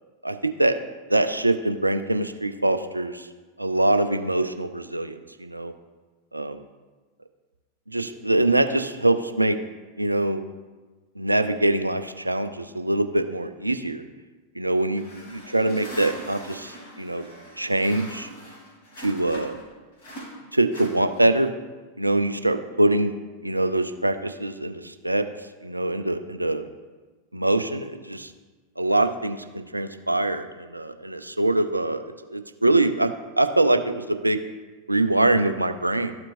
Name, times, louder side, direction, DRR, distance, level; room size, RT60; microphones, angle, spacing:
voice 1, 0.2-0.8 1.1-3.3 3.6-5.7 6.3-6.6 7.9-9.6 10.0-10.4 11.2-14.0 14.6-17.2 17.6-18.3 19.0-19.6 20.5-21.5 22.0-23.1 23.4-25.3 25.6-26.6 27.3-28.3 28.8-34.4 34.9-36.2, right 2 dB, 85° right, 9 dB, 0.4 m, -24 dB
sound 1, 14.9-19.7 20.0-21.5, right 1 dB, 55° left, 2.3 m, -42 dB
13.0 x 4.5 x 2.5 m, 1.3 s
figure-of-eight pair, 90°, 0 cm